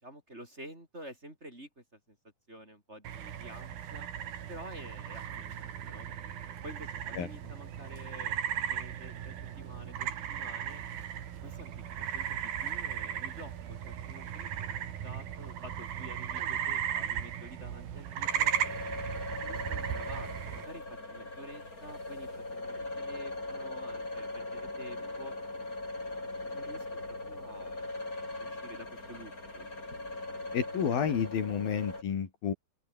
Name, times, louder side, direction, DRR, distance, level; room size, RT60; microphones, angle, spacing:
voice 1, 0.0-2.2 2.5-4.1 4.5-6.1 6.6-10.8 11.4-11.7 12.0-18.5 19.4-25.3 26.1-27.9 28.4-29.7, right 1 dB, 15° right, 5.5 m, -49 dB
sound 1, 3.0-20.7, right 9 dB, 75° right, 4.1 m, -36 dB
sound 2, 18.2-32.0, left 2 dB, 20° left, 6.7 m, -40 dB
voice 2, 30.5-32.5, left 7 dB, 75° left, 4.8 m, -30 dB
open air
omnidirectional pair, 4.3 m